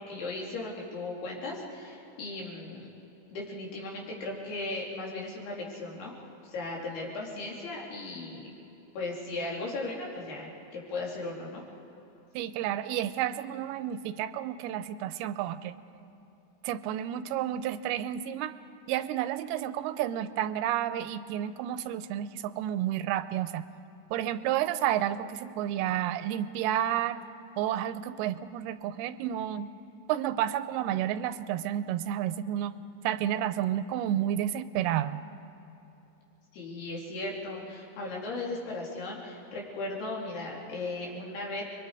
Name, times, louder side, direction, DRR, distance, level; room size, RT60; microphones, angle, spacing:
voice 1, 0.0-2.9 3.3-6.1 6.5-8.5 8.9-11.6 36.5-41.6, left 2 dB, 85° left, -3 dB, 5.0 m, -37 dB
voice 2, 12.4-15.7 16.6-18.5 18.9-23.7 24.1-27.2 27.6-29.7 30.1-32.7 33.0-35.2, right 11 dB, 85° right, 13 dB, 2.6 m, -31 dB
30.0 x 23.0 x 4.8 m, 2.9 s
omnidirectional pair, 4.4 m